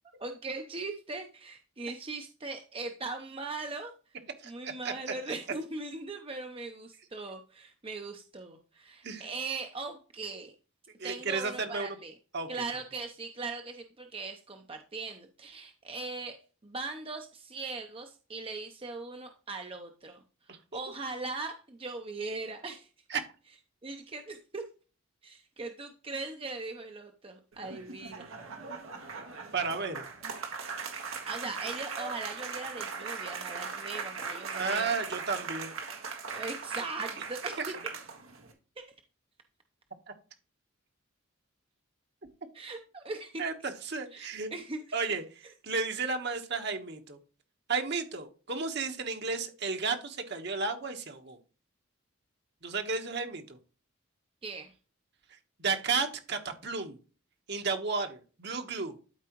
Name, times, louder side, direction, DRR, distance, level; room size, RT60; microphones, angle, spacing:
voice 1, 0.2-3.9 4.4-10.5 11.0-12.2 12.5-20.2 20.5-22.9 23.8-24.6 25.2-28.3 31.3-34.8 36.3-37.7 38.8-38.9 42.5-43.4 44.1-44.8 54.4-54.7, right 3 dB, 25° right, 5 dB, 0.7 m, -39 dB
voice 2, 4.4-5.1 9.0-9.2 11.0-12.0 12.3-12.5 20.5-20.6 23.1-23.2 29.5-30.0 34.5-35.7 43.4-44.5 44.9-47.2 47.7-51.4 52.6-53.6 55.3-57.0 57.5-58.9, right 4 dB, 55° right, 5 dB, 1.3 m, -33 dB
sound 1, 27.5-38.5, right 5 dB, 90° right, 1.7 m, -39 dB
12.0 x 4.8 x 3.0 m, 0.35 s
head